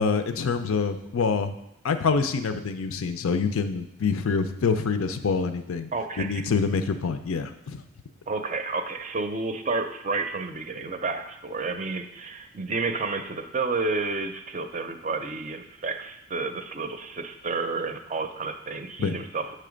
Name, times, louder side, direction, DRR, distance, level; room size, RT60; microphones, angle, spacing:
voice 1, 0.0-1.5 1.8-5.9 6.2-7.8 19.0-19.2, left 5 dB, 85° left, 9 dB, 0.5 m, -26 dB
voice 2, 5.9-6.4 8.3-19.6, right 3 dB, 35° right, 7 dB, 0.5 m, -30 dB
7.7 x 3.3 x 5.1 m, 0.85 s
head